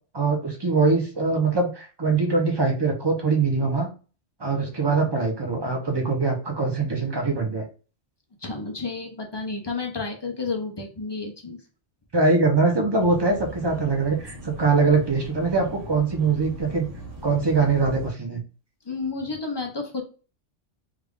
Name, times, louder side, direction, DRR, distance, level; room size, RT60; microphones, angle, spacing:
voice 1, 0.1-3.9 4.4-7.6 12.1-16.9 17.2-18.4, right 4 dB, 25° right, 2 dB, 0.6 m, -22 dB
voice 2, 8.4-11.6 18.8-20.0, left 4 dB, 35° left, 2 dB, 0.4 m, -31 dB
sound 1, 13.0-18.1, equal, 75° right, 1.7 m, -40 dB
3.4 x 2.4 x 3.5 m, 0.35 s
omnidirectional pair, 1.3 m